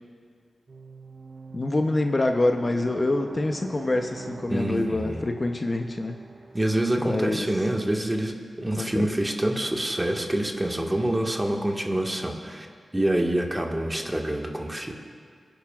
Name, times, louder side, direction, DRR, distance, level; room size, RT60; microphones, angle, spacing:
sound 1, 0.7-7.7, right 4 dB, 55° right, 0.6 m, -44 dB
voice 1, 1.5-6.2 7.0-7.5 8.8-9.1, left 2 dB, 40° left, 5 dB, 0.8 m, -26 dB
voice 2, 4.5-5.3 6.5-12.7 12.9-14.9, right 1 dB, 20° right, 1 dB, 1.6 m, -26 dB
25.5 x 10.0 x 2.4 m, 2.1 s
cardioid pair, 45°, 0 cm